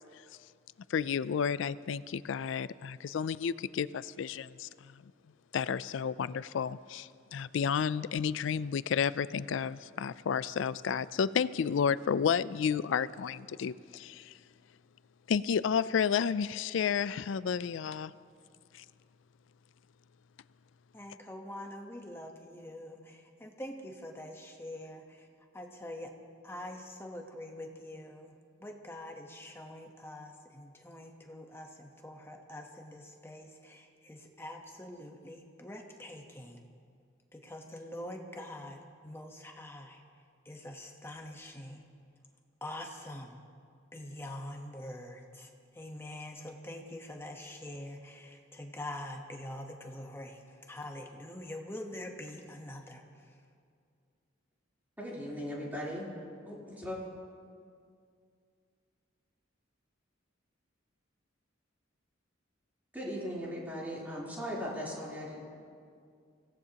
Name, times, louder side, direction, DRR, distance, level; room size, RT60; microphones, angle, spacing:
voice 1, 0.9-4.9 5.5-14.3 15.3-18.1 18.7-18.8, left 7 dB, 70° left, 17 dB, 0.3 m, -31 dB
voice 2, 20.9-25.3 25.5-26.1 26.4-28.3 28.6-36.6 37.3-38.8 39.0-40.0 40.4-41.8 42.6-43.4 43.9-45.5 45.7-50.4 50.7-53.0, left 1 dB, 10° left, 2 dB, 1.0 m, -44 dB
voice 3, 55.0-56.1 56.5-57.0 62.9-65.4, equal, 10° right, -7 dB, 3.5 m, -38 dB
25.0 x 17.0 x 2.9 m, 2.3 s
head